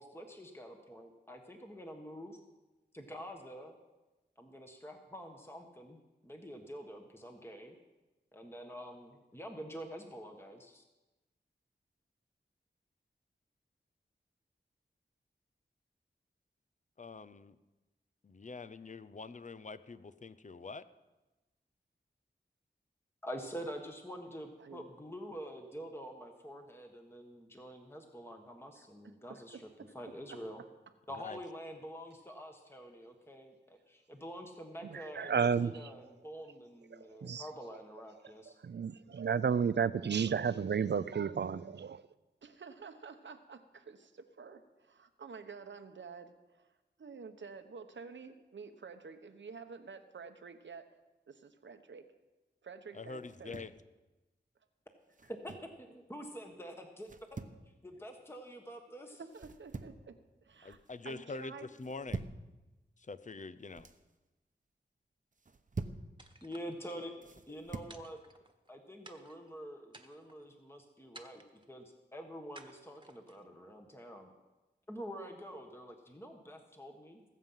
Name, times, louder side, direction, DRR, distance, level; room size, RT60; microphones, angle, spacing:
voice 1, 0.0-2.4 2.9-3.8 4.4-7.8 8.3-10.8 23.2-29.7 29.9-30.6 31.1-38.6 55.2-57.4 57.8-59.2 66.4-67.1 67.5-68.2 68.7-71.4 71.7-74.3 74.9-77.2, equal, 15° left, 1.5 m, -47 dB
voice 2, 17.0-17.6 18.2-20.8 31.1-31.4 52.9-53.7 60.6-62.3 63.1-63.9 66.9-67.2, left 3 dB, 40° left, 0.7 m, -45 dB
voice 3, 29.3-29.9 30.3-30.4 42.4-46.7 47.0-50.9 51.3-52.0 52.6-53.6 59.2-60.1 60.4-60.8 61.0-61.7, right 5 dB, 85° right, 1.0 m, -50 dB
voice 4, 34.9-35.7 37.2-37.4 38.6-42.0, right 6 dB, 65° right, 0.5 m, -31 dB
sound 1, 53.2-53.8 55.1-55.8 57.0-57.6 59.3-60.1 60.5-60.9 61.8-62.5 63.5-64.0 65.3-66.1 67.2-68.0, right 3 dB, 45° right, 0.9 m, -44 dB
sound 2, 66.2-67.1 67.9-68.7 69.0-69.5 69.9-70.5 71.1-71.7 72.5-73.5, right 2 dB, 25° right, 1.4 m, -56 dB
20.0 x 7.5 x 5.7 m
cardioid pair, 45°, 19 cm